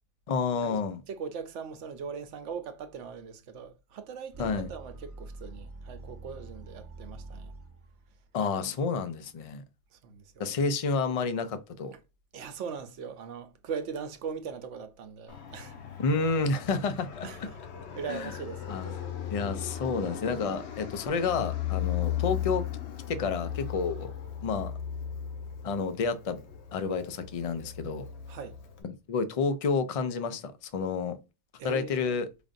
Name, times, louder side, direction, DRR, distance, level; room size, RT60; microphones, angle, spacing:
voice 1, 0.3-1.0 4.4-4.7 8.3-9.6 10.4-11.9 16.0-17.5 18.1-18.3 18.7-18.9 19.3-22.6 23.1-24.1 24.4-24.7 25.6-26.4 26.7-28.1 29.1-31.2 31.6-32.3, left 4 dB, 45° left, 0.5 m, -30 dB
voice 2, 1.1-7.5 9.9-10.6 12.3-15.7 17.2-17.5 17.9-19.0 28.3-28.6 31.6-32.2, right 6 dB, 85° right, 1.0 m, -40 dB
sound 1, 4.3-8.1, right 3 dB, 15° right, 0.8 m, -45 dB
Fixed-wing aircraft airplane, 15.3-28.8, left 10 dB, 70° left, 1.0 m, -37 dB
5.0 x 2.5 x 2.5 m
omnidirectional pair, 1.2 m